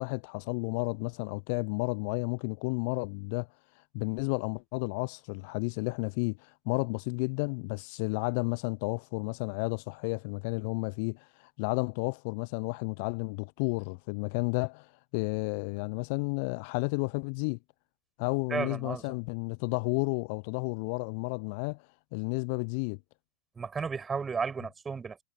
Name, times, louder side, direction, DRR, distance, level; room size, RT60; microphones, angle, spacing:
voice 1, 0.0-3.5 3.9-17.6 18.2-21.8 22.1-23.0, left 33 dB, 50° left, 0.8 m, -32 dB
voice 2, 18.5-19.0 23.6-25.2, right 5 dB, 20° right, 6.7 m, -33 dB
figure-of-eight pair, 90°, 0 cm